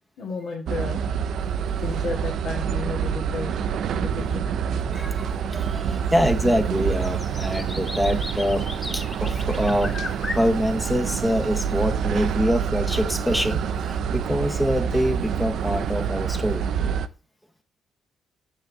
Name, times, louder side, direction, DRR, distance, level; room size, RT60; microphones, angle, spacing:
voice 1, 0.2-1.0 1.8-4.4 5.3-5.4, left 4 dB, 80° left, 1.5 m, -33 dB
sound 1, 0.7-17.1, right 7 dB, 70° right, 0.4 m, -27 dB
voice 2, 4.8-10.0 10.3-16.7, equal, 5° left, 0.6 m, -25 dB
sound 2, 6.1-6.2 6.5-12.1, left 2 dB, 20° left, 1.0 m, -37 dB
6.5 x 6.4 x 2.6 m
cardioid pair, 90°, 0 cm